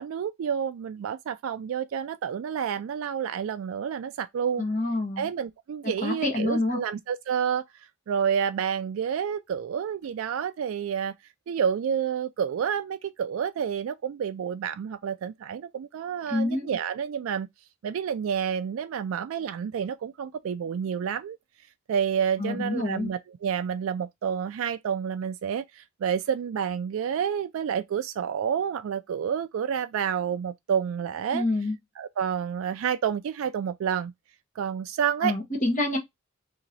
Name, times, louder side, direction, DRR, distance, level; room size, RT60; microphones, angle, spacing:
voice 1, 0.0-4.6 5.2-7.6 8.1-11.1 11.5-17.5 17.8-21.4 21.9-31.4 32.0-34.1 34.6-35.3, right 7 dB, 70° right, 0.3 m, -29 dB
voice 2, 4.6-5.3 6.0-6.8 16.3-16.7 22.4-23.1 31.3-31.8 35.2-36.0, left 2 dB, 35° left, 1.3 m, -27 dB
2.9 x 2.9 x 3.9 m
head